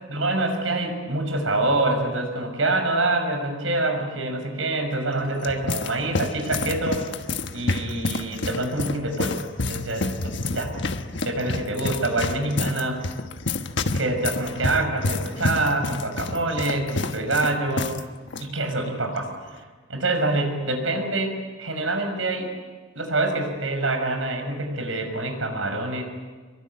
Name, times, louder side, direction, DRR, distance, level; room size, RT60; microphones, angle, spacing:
voice 1, 0.1-7.1 7.5-9.4 9.7-10.7 11.2-13.0 13.9-17.9 18.4-19.3 19.9-22.5 22.9-26.0, right 2 dB, 85° right, 4 dB, 6.4 m, -26 dB
sound 1, 5.1-18.0 18.3-18.4 19.2-19.5, left 3 dB, 65° left, 1.3 m, -29 dB
25.5 x 23.0 x 9.8 m, 1.4 s
head